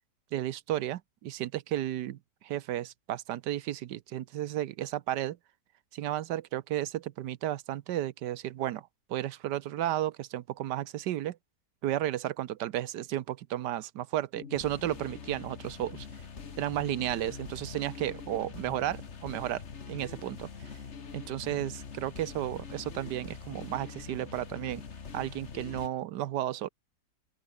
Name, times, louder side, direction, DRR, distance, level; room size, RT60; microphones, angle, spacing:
voice 1, 0.3-2.2 2.4-5.4 5.9-8.8 9.1-11.4 11.8-16.1 16.6-19.6 19.9-20.5 21.1-24.8 25.1-26.7, right 13 dB, 80° right, 1.4 m, -33 dB
sound 1, 14.4-25.9, left 5 dB, 45° left, 1.7 m, -44 dB
open air
omnidirectional pair, 1.8 m